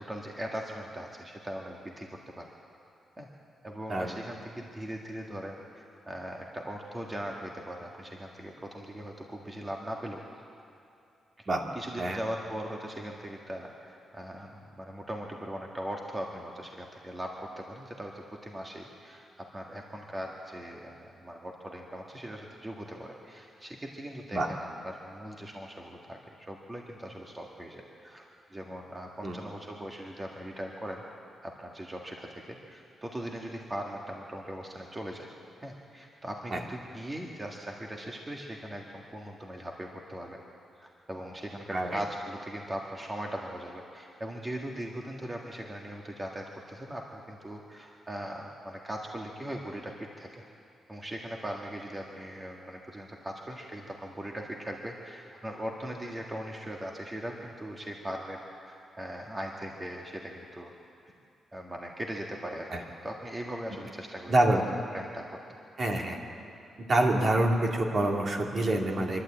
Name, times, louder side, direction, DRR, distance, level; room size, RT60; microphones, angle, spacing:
voice 1, 0.0-2.1 2.4-2.5 3.2-3.3 3.6-10.2 11.7-31.0 31.4-35.3 35.6-40.4 40.8-50.4 50.9-60.7 61.0-61.1 61.5-62.7 63.0-64.4 64.9-65.6, equal, 20° right, 0 dB, 1.8 m, -40 dB
voice 2, 64.3-64.6 65.8-66.2 66.9-69.2, right 1 dB, 45° right, 0 dB, 2.7 m, -26 dB
25.0 x 12.0 x 8.7 m, 2.5 s
cardioid pair, 100°, 0 cm